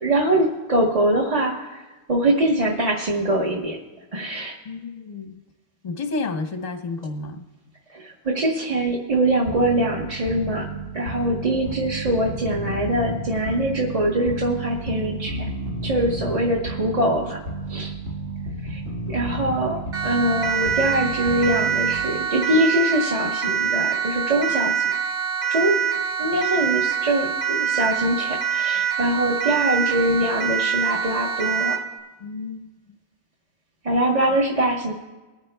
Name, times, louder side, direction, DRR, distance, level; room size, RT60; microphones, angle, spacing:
voice 1, 0.0-3.8 4.1-4.5 7.9-10.7 10.9-15.5 15.8-17.4 17.7-17.9 18.6-18.8 19.1-24.8 25.5-25.8 26.2-31.8 33.8-34.9, right 1 dB, 30° right, -2 dB, 1.0 m, -23 dB
voice 2, 4.6-5.4 5.8-7.4 16.2-16.4 32.2-32.7, left 3 dB, 40° left, 5 dB, 0.7 m, -31 dB
sound 1, 9.4-22.4, right 2 dB, 75° right, 2.4 m, -32 dB
Siren, 19.9-31.9, right 8 dB, 60° right, 1.8 m, -25 dB
22.5 x 10.0 x 2.2 m, 1.2 s
omnidirectional pair, 1.4 m